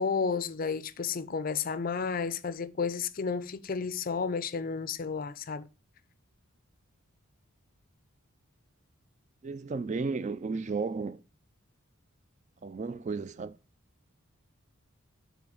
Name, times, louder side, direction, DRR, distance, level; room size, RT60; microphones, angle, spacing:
voice 1, 0.0-5.7, left 5 dB, 40° left, 0.4 m, -32 dB
voice 2, 9.4-11.2 12.6-13.6, right 4 dB, 30° right, 0.3 m, -33 dB
7.4 x 3.4 x 6.3 m
head